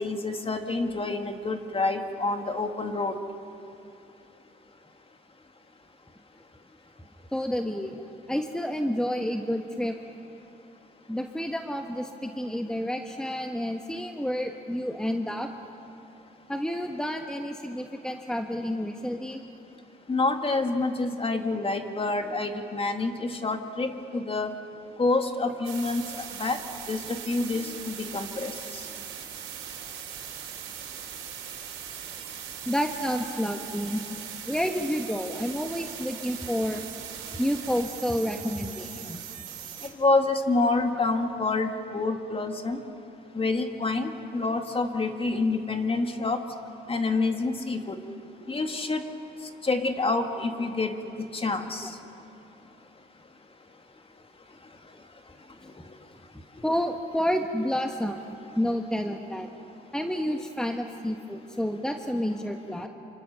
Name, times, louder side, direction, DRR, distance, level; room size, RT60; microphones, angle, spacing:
voice 1, 0.0-3.2 20.1-24.5 25.0-26.6 26.9-28.5 40.0-42.8 43.3-46.4 46.9-48.0 48.5-49.0 49.6-50.9 51.3-51.9, left 3 dB, 30° left, 5 dB, 2.2 m, -27 dB
voice 2, 7.3-10.0 11.1-15.5 16.5-19.4 25.4-25.5 32.6-34.0 34.5-36.8 37.4-39.5 51.8-51.9 56.6-58.2 58.5-59.5 59.9-62.9, equal, 5° left, 4 dB, 1.4 m, -30 dB
sound 1, 25.6-39.9, right 9 dB, 90° right, 4.0 m, -40 dB
28.0 x 26.0 x 6.9 m, 2.8 s
cardioid pair, 90°, 20 cm